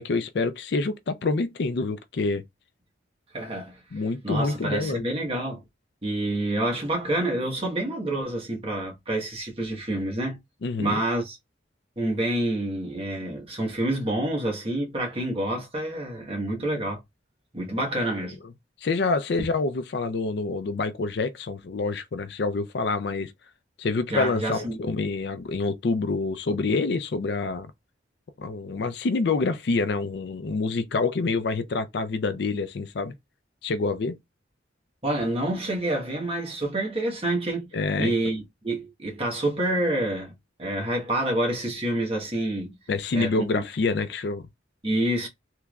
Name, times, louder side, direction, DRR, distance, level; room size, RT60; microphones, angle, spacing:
voice 1, 0.0-2.4 3.9-5.0 10.6-11.0 18.8-23.3 23.8-27.7 28.4-33.1 33.6-34.2 37.7-38.1 42.9-44.4, left 3 dB, 60° left, 0.4 m, -27 dB
voice 2, 3.3-3.8 4.2-5.6 6.0-10.4 10.8-11.4 12.0-17.0 17.5-18.4 24.1-24.8 35.0-37.7 38.0-40.3 40.6-42.8 43.1-43.6 44.8-45.3, right 1 dB, 30° right, 1.2 m, -28 dB
3.4 x 3.1 x 2.3 m
head